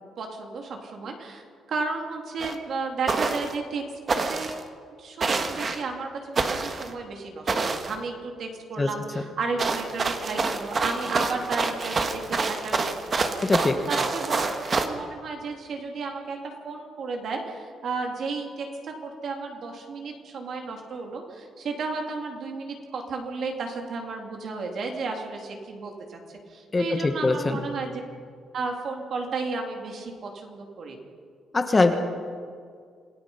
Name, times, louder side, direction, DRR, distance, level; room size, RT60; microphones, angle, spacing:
voice 1, 0.2-4.7 5.0-13.4 13.9-16.4 16.6-26.2 26.5-28.0 28.5-31.0, right 4 dB, 50° right, 2 dB, 3.0 m, -33 dB
sound 1, 2.4-2.5 3.1-3.5 4.1-4.6 5.2-5.8 6.3-6.9 7.5-7.9 9.6-14.9, right 4 dB, 30° right, 1.3 m, -27 dB
voice 2, 13.4-13.8 26.7-27.6 31.5-32.0, left 3 dB, 20° left, 6 dB, 1.2 m, -22 dB
27.0 x 17.5 x 5.7 m, 2.1 s
cardioid pair, 165°, 0 cm